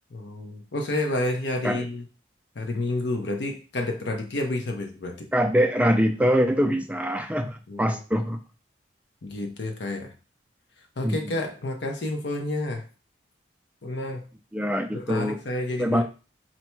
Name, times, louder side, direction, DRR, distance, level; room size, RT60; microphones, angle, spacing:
voice 1, 0.1-2.0 2.6-5.3 7.7-8.0 9.2-10.1 11.0-12.8 13.8-14.2 14.9-16.0, left 2 dB, 70° left, 4 dB, 0.7 m, -30 dB
voice 2, 5.3-8.4 11.0-11.3 14.5-15.4 15.8-16.0, equal, 5° right, 5 dB, 0.3 m, -23 dB
4.2 x 2.1 x 4.4 m, 0.35 s
head